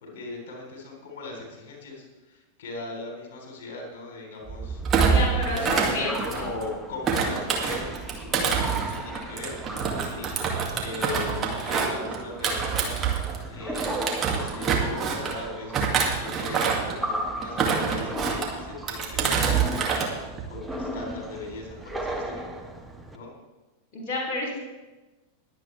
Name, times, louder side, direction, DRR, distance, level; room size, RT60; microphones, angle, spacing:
voice 1, 0.0-4.8 5.3-7.9 8.2-9.6 10.0-10.3 10.8-13.0 13.5-13.9 14.3-15.9 16.2-20.0 20.5-22.5 23.1-23.3, left 2 dB, 55° left, 0 dB, 3.7 m, -38 dB
sound 1, 4.4-23.2, right 3 dB, 5° right, 1.2 m, -33 dB
voice 2, 4.9-6.5 23.9-24.6, left 2 dB, 35° left, -4 dB, 3.3 m, -30 dB
Thump thud, 4.9-6.6 7.1-13.4 13.7-15.4 15.7-17.0 17.4-18.5 18.9-20.1 20.4-20.7, right 6 dB, 25° right, 2.2 m, -26 dB
21.5 x 8.4 x 3.4 m, 1.2 s
figure-of-eight pair, 90°, 0 cm